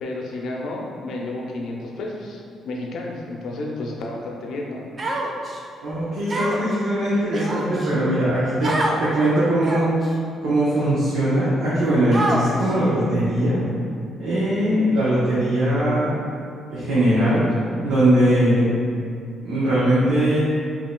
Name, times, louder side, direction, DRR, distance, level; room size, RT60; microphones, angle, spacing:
voice 1, 0.0-4.8, left 2 dB, 75° left, -1 dB, 0.6 m, -31 dB
Human voice, 5.0-5.6 6.3-6.7 7.3-7.9 8.6-9.0 9.6-10.1 10.8-10.9 12.1-12.7, right 2 dB, 40° right, 0.5 m, -25 dB
voice 2, 5.8-9.9 10.4-13.6 14.2-16.1 16.7-17.4 17.8-18.7 19.4-20.4, right 1 dB, 80° right, -11 dB, 0.9 m, -20 dB
5.3 x 2.7 x 2.2 m, 2.3 s
cardioid pair, 90°, 0 cm